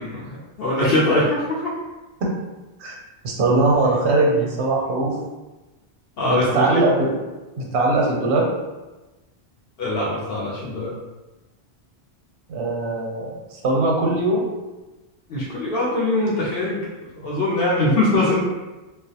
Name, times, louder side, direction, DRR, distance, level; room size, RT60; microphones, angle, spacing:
voice 1, 0.0-1.7 6.2-6.9 9.8-10.9 15.3-16.9 17.1-18.4, left 1 dB, 65° left, -5 dB, 0.7 m, -22 dB
voice 2, 3.2-5.2 6.2-7.2 7.6-8.5 12.5-14.5, right 2 dB, 85° right, -1 dB, 0.9 m, -20 dB
2.2 x 2.0 x 2.7 m, 1.1 s
omnidirectional pair, 1.1 m